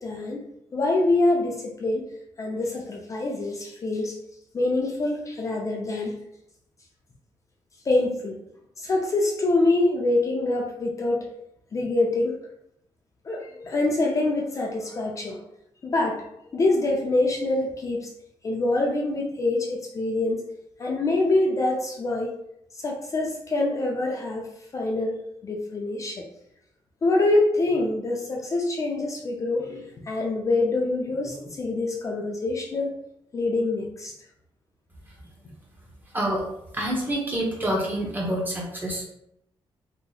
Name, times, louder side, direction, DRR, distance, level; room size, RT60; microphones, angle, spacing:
voice 1, 0.0-0.4 0.7-2.1 2.4-4.2 4.5-6.1 7.9-8.4 8.8-11.3 11.7-12.4 13.2-15.4 15.8-16.2 16.5-18.1 18.4-20.4 20.8-22.3 22.8-24.5 24.7-25.2 25.4-26.2 27.0-32.9 33.3-34.1 35.4-35.5, left 2 dB, 35° left, -1 dB, 0.4 m, -25 dB
voice 2, 36.1-36.5 36.7-39.0, right 1 dB, 20° right, -3 dB, 0.8 m, -27 dB
2.8 x 2.0 x 3.8 m, 0.78 s
wide cardioid pair, 155°, 10 cm